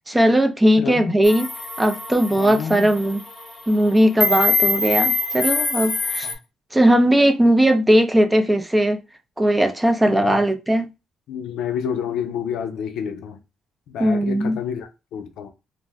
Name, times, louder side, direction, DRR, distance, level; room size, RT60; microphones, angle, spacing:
voice 1, 0.1-1.5 1.8-3.2 3.7-6.3 6.7-9.0 9.4-10.9 14.0-14.6, equal, 15° right, 0.5 m, -18 dB
voice 2, 0.8-1.1 2.4-2.9 6.2-6.4 10.1-10.4 11.3-13.4 13.9-15.5, left 8 dB, 85° left, 0.4 m, -29 dB
sound 1, 1.2-6.3, left 3 dB, 30° left, 1.1 m, -24 dB
2.5 x 2.0 x 3.4 m
cardioid pair, 90°, 0 cm